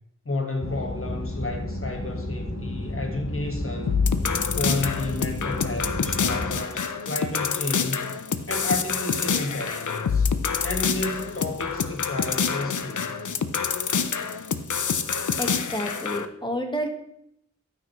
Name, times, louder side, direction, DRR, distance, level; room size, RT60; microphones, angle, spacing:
voice 1, 0.2-4.0 4.5-8.2 8.5-10.3 10.6-13.2, left 2 dB, 45° left, 3 dB, 1.6 m, -31 dB
sound 1, 0.6-6.6, left 1 dB, 65° left, 1.8 m, -32 dB
sound 2, 3.9-16.3, left 6 dB, 85° left, 0.6 m, -27 dB
voice 2, 15.4-16.9, equal, 15° left, 3 dB, 1.5 m, -30 dB
13.0 x 6.0 x 3.1 m, 0.73 s
wide cardioid pair, 65°, 30 cm